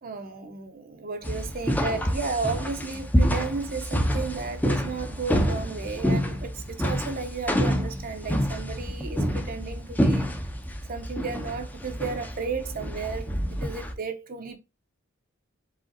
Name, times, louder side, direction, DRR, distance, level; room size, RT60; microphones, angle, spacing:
voice 1, 0.0-10.3 10.9-14.6, right 4 dB, 45° right, 0.7 m, -33 dB
sound 1, 1.2-13.9, equal, 10° left, 0.6 m, -27 dB
4.8 x 3.7 x 2.6 m
head